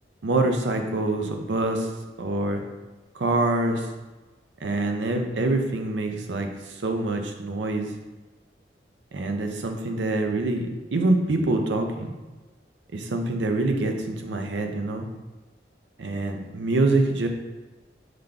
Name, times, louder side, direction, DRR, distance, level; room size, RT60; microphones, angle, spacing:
voice 1, 0.2-1.9 2.2-2.6 3.1-3.9 4.6-7.9 9.1-12.1 12.9-15.1 16.0-17.3, right 2 dB, 90° right, 4 dB, 0.6 m, -25 dB
4.9 x 3.8 x 2.3 m, 1.2 s
head